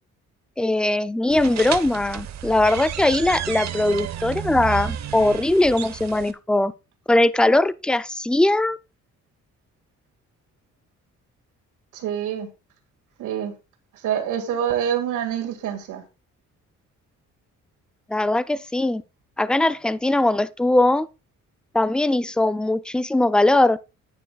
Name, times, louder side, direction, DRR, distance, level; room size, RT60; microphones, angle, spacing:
voice 1, 0.6-6.7 7.1-8.8 18.1-19.0 19.4-21.1 21.7-23.8, left 2 dB, 5° left, 0.3 m, -20 dB
sound 1, 1.3-6.3, right 10 dB, 65° right, 0.9 m, -32 dB
voice 2, 11.9-12.5 13.2-13.5 14.0-16.0, right 9 dB, 85° right, 1.9 m, -26 dB
10.0 x 9.2 x 2.3 m
cardioid pair, 90°, 30 cm